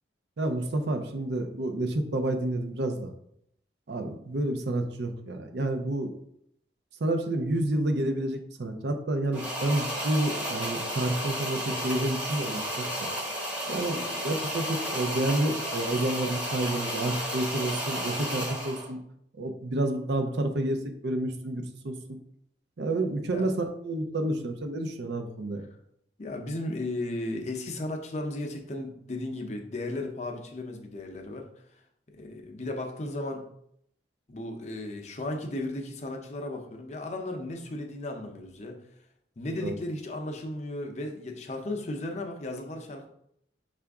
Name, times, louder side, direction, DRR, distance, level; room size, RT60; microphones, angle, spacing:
voice 1, 0.4-3.1 3.9-6.2 7.0-12.9 13.7-19.0 19.4-22.0 22.8-25.6 39.6-39.7, right 1 dB, 70° right, 6 dB, 0.5 m, -29 dB
sound 1, 9.3-18.9, equal, 10° right, 0.8 m, -33 dB
voice 2, 26.2-31.5 32.1-33.4 34.3-38.8 39.4-43.1, left 1 dB, 40° left, 3 dB, 0.5 m, -35 dB
5.6 x 2.5 x 3.5 m, 0.72 s
head